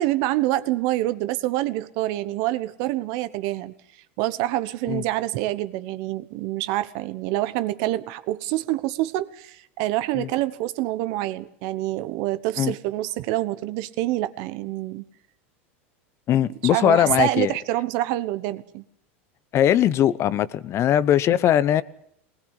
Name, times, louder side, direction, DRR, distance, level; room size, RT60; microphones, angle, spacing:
voice 1, 0.0-3.7 4.2-15.0 16.7-18.8, right 16 dB, 60° right, 13 dB, 1.1 m, -26 dB
voice 2, 16.3-17.5 19.5-21.8, left 11 dB, 40° left, 17 dB, 1.0 m, -20 dB
20.5 x 20.0 x 7.4 m, 0.70 s
hypercardioid pair, 110°, 7 cm